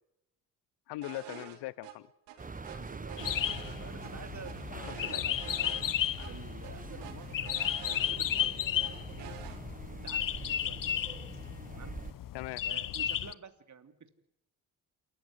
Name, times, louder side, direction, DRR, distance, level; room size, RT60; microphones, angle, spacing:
voice 1, 0.9-2.1 4.7-5.2 12.3-12.7, left 18 dB, 75° left, 23 dB, 0.9 m, -41 dB
sound 1, 1.0-1.6 1.8-1.9 2.3-4.1 4.5-5.9 6.2-6.3 6.6-8.5 8.8-9.6, right 10 dB, 85° right, 3.2 m, -47 dB
sound 2, 2.4-12.1, right 3 dB, 20° right, 1.3 m, -44 dB
voice 2, 2.6-5.7 6.2-9.3 9.9-10.9 11.7-12.0 12.6-14.1, right 6 dB, 45° right, 9 dB, 3.0 m, -50 dB
sound 3, 3.2-13.3, left 11 dB, 50° left, 1.0 m, -34 dB
27.5 x 14.5 x 9.7 m, 0.84 s
hypercardioid pair, 55°, 41 cm